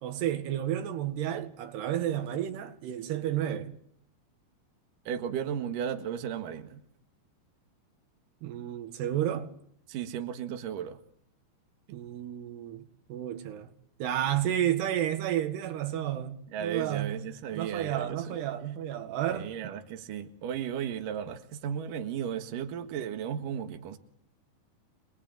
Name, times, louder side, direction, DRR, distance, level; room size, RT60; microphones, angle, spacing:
voice 1, 0.0-3.8 8.4-9.5 11.9-13.7 14.0-17.2 17.5-19.5, right 11 dB, 85° right, 3.8 m, -31 dB
voice 2, 5.1-6.8 9.9-11.0 16.5-18.4 19.3-24.0, right 8 dB, 60° right, 3.1 m, -35 dB
27.0 x 20.5 x 9.1 m
omnidirectional pair, 4.6 m